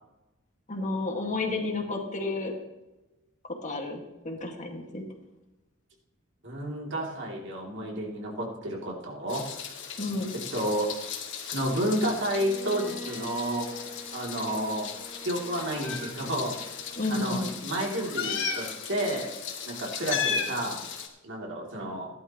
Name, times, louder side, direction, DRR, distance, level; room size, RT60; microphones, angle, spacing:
voice 1, 0.7-2.6 3.6-5.0 10.0-10.3 17.0-17.6, left 2 dB, 40° left, 1 dB, 2.1 m, -31 dB
voice 2, 6.4-9.4 10.5-10.9 11.4-14.9 15.2-16.5 17.1-19.3 19.7-20.8 21.2-22.1, right 1 dB, 65° right, -1 dB, 3.0 m, -31 dB
Meow, 9.3-21.1, left 6 dB, 65° left, 2.1 m, -36 dB
Bowed string instrument, 12.3-17.3, equal, 10° right, 2.7 m, -44 dB
17.5 x 11.5 x 3.1 m, 1.0 s
head